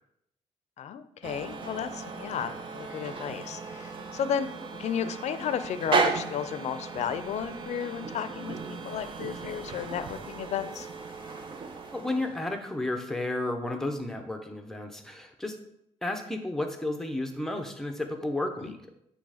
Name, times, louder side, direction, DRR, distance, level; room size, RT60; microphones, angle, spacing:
voice 1, 0.8-4.5 4.8-10.9 18.6-18.7, left 8 dB, 75° left, 12 dB, 0.5 m, -33 dB
sound 1, 1.2-12.6, right 4 dB, 45° right, 0.6 m, -35 dB
voice 2, 11.9-15.6 16.0-18.9, left 2 dB, 5° left, 4 dB, 0.7 m, -32 dB
8.6 x 3.3 x 4.9 m, 0.76 s
wide cardioid pair, 170°, 12 cm